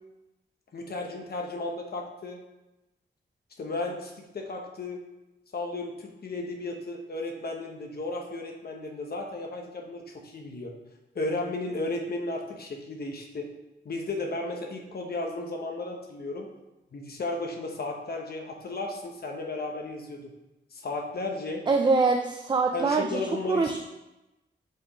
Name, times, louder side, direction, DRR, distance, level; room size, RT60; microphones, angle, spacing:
voice 1, 0.7-2.4 3.6-5.0 5.5-10.7 11.1-13.5 13.8-16.5 16.9-20.3 20.7-21.6 22.7-23.8, left 2 dB, 50° left, 1 dB, 1.1 m, -34 dB
voice 2, 21.7-23.2 23.5-23.8, right 4 dB, 25° right, 4 dB, 0.4 m, -24 dB
6.0 x 5.3 x 4.3 m, 1.0 s
wide cardioid pair, 165°, 20 cm